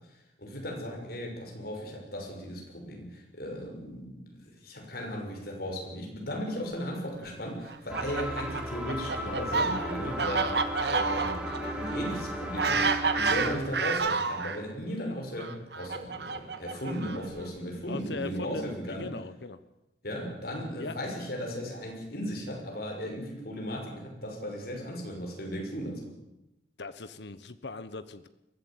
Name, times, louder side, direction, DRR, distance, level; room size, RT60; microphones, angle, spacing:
voice 1, 0.1-19.1 20.0-26.1, equal, 60° left, 2 dB, 6.2 m, -36 dB
Fowl, 7.7-14.6 15.4-17.4, right 4 dB, 65° right, 1.6 m, -30 dB
sound 1, 7.9-13.6, equal, 5° right, 3.1 m, -35 dB
voice 2, 17.9-19.6 20.8-21.0 26.8-28.3, left 3 dB, 75° left, 12 dB, 1.1 m, -39 dB
22.5 x 15.0 x 9.1 m, 0.89 s
head